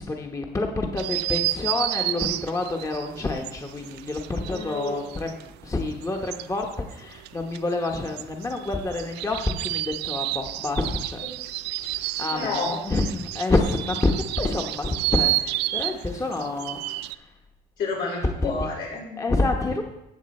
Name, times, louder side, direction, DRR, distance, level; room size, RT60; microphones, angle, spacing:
voice 1, 0.0-11.2 11.8-17.3 18.4-18.7 19.2-19.8, left 2 dB, 20° left, 2 dB, 1.0 m, -28 dB
sound 1, 1.0-5.5 5.8-17.1, right 16 dB, 85° right, 0.5 m, -31 dB
voice 2, 4.4-5.0 12.3-12.8 17.8-19.2, left 4 dB, 75° left, -3 dB, 5.2 m, -30 dB
17.5 x 6.8 x 4.2 m, 0.92 s
cardioid pair, 110°, 17 cm